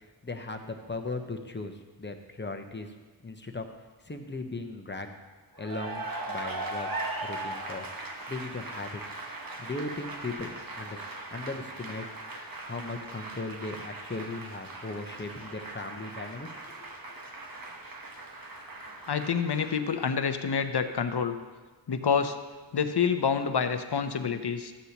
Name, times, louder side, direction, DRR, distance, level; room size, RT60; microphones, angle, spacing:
voice 1, 0.2-2.9 3.2-3.7 4.0-5.1 5.6-6.9 7.2-9.1 9.6-12.1 12.4-16.9, left 2 dB, 25° left, 5 dB, 0.9 m, -38 dB
Cheering / Applause, 5.5-20.5, right 2 dB, 45° right, 1.1 m, -39 dB
voice 2, 19.1-21.3 21.9-22.4 22.7-24.7, left 6 dB, 60° left, 8 dB, 0.7 m, -27 dB
12.5 x 8.0 x 2.9 m, 1.3 s
wide cardioid pair, 55°, 46 cm